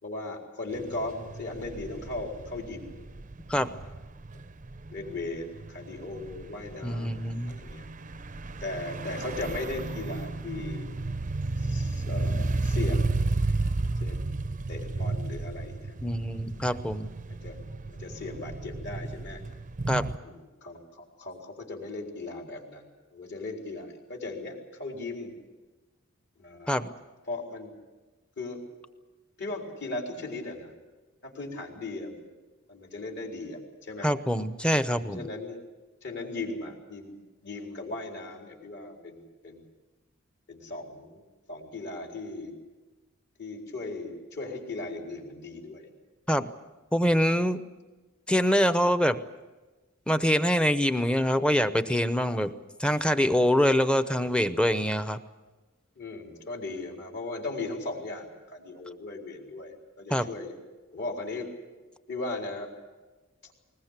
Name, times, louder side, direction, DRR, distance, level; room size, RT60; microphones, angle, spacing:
voice 1, 0.0-2.9 4.9-7.2 7.5-7.9 8.6-11.0 11.6-13.1 14.0-14.3 14.7-15.9 16.7-16.8 17.3-17.6 17.9-19.4 20.2-22.8 23.1-25.3 26.4-26.8 27.3-27.7 28.4-28.6 29.4-30.7 31.2-32.3 32.7-34.1 35.1-35.6 36.0-39.7 40.5-41.2 41.5-42.6 43.4-45.9 56.0-60.5 60.9-61.5 62.1-62.7, left 2 dB, 60° left, 1 dB, 4.2 m, -37 dB
sound 1, 0.7-20.2, right 2 dB, 40° right, 0.6 m, -33 dB
voice 2, 6.8-7.6 16.0-17.1 19.9-20.1 26.7-26.9 34.0-35.2 46.3-46.5 46.9-47.6 48.3-49.2 50.1-52.5 52.8-55.2 60.1-60.3, equal, 5° left, 11 dB, 0.8 m, -25 dB
21.0 x 20.0 x 8.2 m, 1.2 s
head